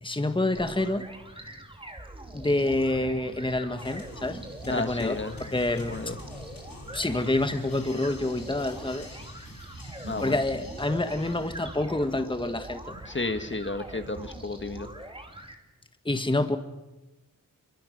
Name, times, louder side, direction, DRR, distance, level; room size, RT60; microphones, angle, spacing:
voice 1, 0.0-1.0 2.3-5.2 5.5-6.0 6.9-9.1 10.2-12.8 16.0-16.6, left 2 dB, 15° left, 8 dB, 1.5 m, -27 dB
sound 1, 0.5-15.6, right 1 dB, 15° right, 2.9 m, -44 dB
sound 2, 2.2-14.8, right 2 dB, 60° right, 7.8 m, -46 dB
sound 3, 3.8-12.2, left 3 dB, 75° left, 3.9 m, -47 dB
voice 2, 4.7-5.3 5.9-6.2 10.0-10.3 13.1-14.9, left 2 dB, 35° left, 8 dB, 1.6 m, -32 dB
26.5 x 24.0 x 6.5 m, 1.0 s
wide cardioid pair, 85°, 34 cm